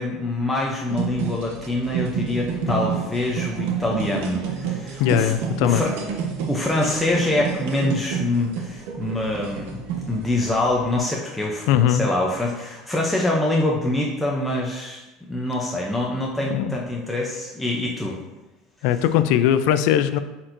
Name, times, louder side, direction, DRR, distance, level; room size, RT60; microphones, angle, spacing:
voice 1, 0.0-5.3 5.6-6.0 6.5-15.0 15.3-18.2, left 1 dB, 5° left, -3 dB, 0.5 m, -25 dB
sound 1, 0.9-11.0, right 7 dB, 75° right, 0.9 m, -30 dB
voice 2, 5.0-5.8 11.7-12.1 16.4-16.7 18.8-20.2, left 10 dB, 60° left, 11 dB, 0.4 m, -19 dB
8.5 x 4.3 x 2.6 m, 1.0 s
cardioid pair, 175°, 0 cm